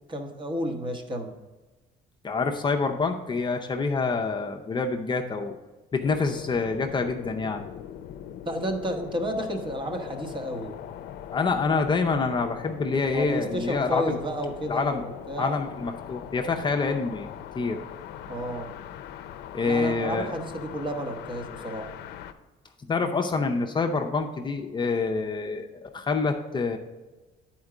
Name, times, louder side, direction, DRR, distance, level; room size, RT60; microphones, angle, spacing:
voice 1, 0.1-1.3 8.4-10.7 13.1-15.6 18.3-18.7 19.7-21.9, equal, 30° right, 4 dB, 1.0 m, -31 dB
voice 2, 2.2-5.6 5.9-7.6 11.3-14.2 14.7-15.0 15.4-17.3 17.5-17.8 19.5-20.3 22.9-26.8, left 4 dB, 25° left, 3 dB, 0.6 m, -26 dB
sound 1, 6.0-22.3, left 10 dB, 75° left, 0.5 m, -41 dB
9.3 x 4.4 x 4.9 m, 1.2 s
cardioid pair, 110°, 17 cm